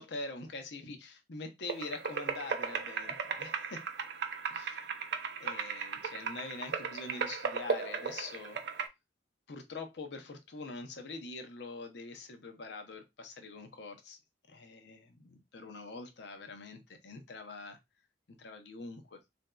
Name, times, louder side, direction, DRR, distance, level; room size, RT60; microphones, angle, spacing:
voice 1, 0.0-3.8 4.5-4.9 5.4-8.6 9.5-14.2 14.5-17.8 18.4-19.2, left 3 dB, 70° left, 0.7 m, -44 dB
sound 1, 1.7-8.9, right 5 dB, 65° right, 0.5 m, -36 dB
4.0 x 2.6 x 2.2 m
head